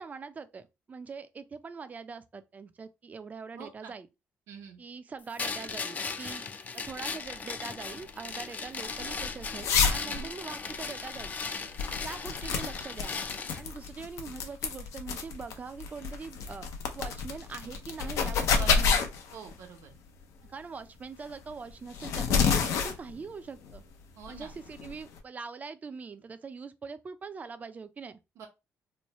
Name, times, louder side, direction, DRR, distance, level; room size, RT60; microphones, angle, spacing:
voice 1, 0.0-4.1 4.8-6.5 6.7-11.3 12.0-13.2 13.6-16.7 16.9-19.1 20.5-23.8 24.3-28.2, right 5 dB, 30° right, 0.5 m, -43 dB
voice 2, 3.5-3.9 4.5-4.8 10.0-10.3 18.5-18.8 19.3-20.0 24.2-24.5 28.4-28.5, right 6 dB, 80° right, 1.1 m, -45 dB
sound 1, 5.4-13.6, left 5 dB, 30° left, 0.4 m, -37 dB
sound 2, 6.9-25.2, left 5 dB, 85° left, 0.7 m, -31 dB
3.2 x 2.2 x 4.1 m
cardioid pair, 110°, 5 cm